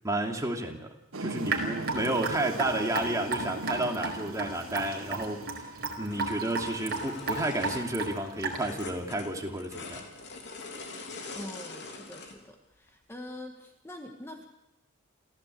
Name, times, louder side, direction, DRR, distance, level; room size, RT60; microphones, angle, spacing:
voice 1, 0.0-5.4 6.0-10.0, right 1 dB, 15° right, 2 dB, 2.8 m, -31 dB
sound 1, 1.1-8.1, right 2 dB, 90° right, 1.3 m, -40 dB
Raindrop / Drip, 1.5-8.8, right 3 dB, 50° right, 4.6 m, -33 dB
sound 2, 6.1-12.4 12.9-13.0, left 3 dB, 55° left, 3.3 m, -43 dB
voice 2, 11.3-14.5, left 1 dB, 10° left, 3 dB, 1.7 m, -44 dB
27.5 x 15.5 x 8.4 m, 0.88 s
head